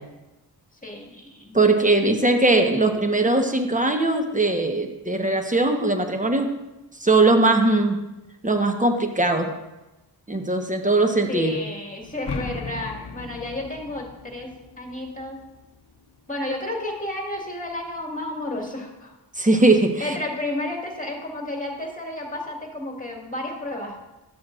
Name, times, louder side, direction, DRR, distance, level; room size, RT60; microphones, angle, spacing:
voice 1, 0.8-1.6 11.3-14.5 14.8-15.4 16.3-19.2 20.0-24.0, left 1 dB, 20° left, 0 dB, 2.0 m, -31 dB
voice 2, 1.5-6.5 7.0-8.0 8.4-9.5 10.3-11.6 19.4-20.2, right 2 dB, 15° right, 4 dB, 1.1 m, -20 dB
sound 1, 12.0-16.0, left 4 dB, 65° left, 0.8 m, -37 dB
12.5 x 7.0 x 2.5 m, 1.0 s
cardioid pair, 45°, 44 cm